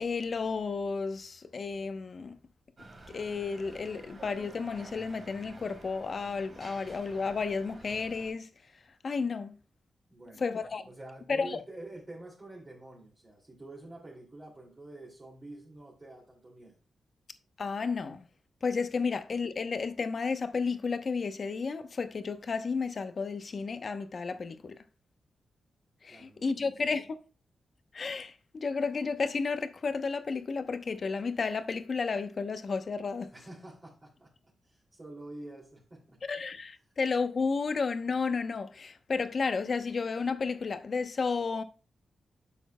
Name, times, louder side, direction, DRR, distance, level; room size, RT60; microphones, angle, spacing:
voice 1, 0.0-2.4 3.1-8.5 9.0-9.6 10.4-10.8 11.3-11.6 17.6-18.2 18.6-24.8 26.0-27.2 27.9-33.3 36.3-41.6, left 4 dB, 50° left, 0.9 m, -32 dB
sound 1, 2.8-8.3, right 2 dB, 45° right, 2.4 m, -50 dB
voice 2, 10.1-10.5 10.8-16.8 26.1-26.6 33.3-36.2, right 2 dB, 30° right, 2.8 m, -48 dB
10.0 x 7.1 x 2.3 m
cardioid pair, 100°, 0 cm